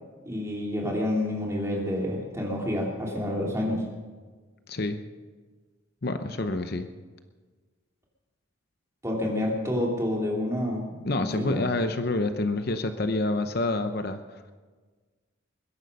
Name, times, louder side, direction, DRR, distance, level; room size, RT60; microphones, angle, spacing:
voice 1, 0.3-3.8 9.0-10.8 11.1-11.6, left 1 dB, 15° right, -2 dB, 2.9 m, -28 dB
voice 2, 4.7-5.0 6.0-6.9 10.9-14.2, left 2 dB, 50° left, 8 dB, 0.7 m, -28 dB
21.0 x 11.0 x 5.4 m, 1.4 s
head